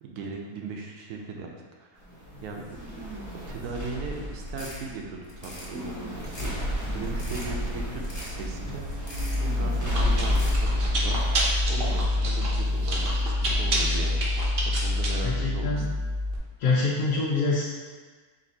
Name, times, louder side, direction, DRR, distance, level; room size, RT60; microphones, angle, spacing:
voice 1, 0.0-1.5 1.8-1.9 2.4-9.0 9.3-11.4 11.7-14.3 14.6-15.9, right 4 dB, 80° right, 0 dB, 1.1 m, -38 dB
sound 1, 2.0-13.2, equal, 20° right, 0.5 m, -34 dB
sound 2, 4.4-4.8 5.2-5.7 6.2-6.6 7.0-7.5 8.0-8.4 8.9-9.5 10.2-10.6, left 1 dB, 40° left, 0.4 m, -42 dB
Chewing mastication, 9.1-16.4, left 1 dB, 50° right, 0.7 m, -25 dB
voice 2, 15.2-15.9 16.6-17.6, left 3 dB, 80° left, -6 dB, 1.2 m, -25 dB
4.2 x 2.6 x 4.0 m, 1.4 s
omnidirectional pair, 1.6 m